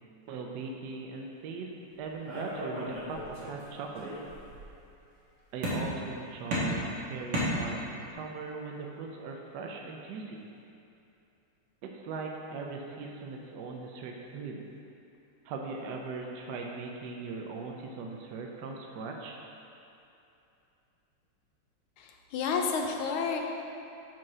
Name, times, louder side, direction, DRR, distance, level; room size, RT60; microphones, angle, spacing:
voice 1, 0.3-1.7 2.0-4.1 5.5-10.5 11.8-14.6 15.4-19.4, right 4 dB, 70° right, 0 dB, 1.1 m, -39 dB
sound 1, 2.3-3.6 4.0-4.7 5.6-6.1 6.5-8.1, equal, 90° right, 2.3 m, -33 dB
voice 2, 22.0-23.4, left 5 dB, 80° left, 2 dB, 1.6 m, -30 dB
5.5 x 5.2 x 5.9 m, 2.7 s
omnidirectional pair, 2.3 m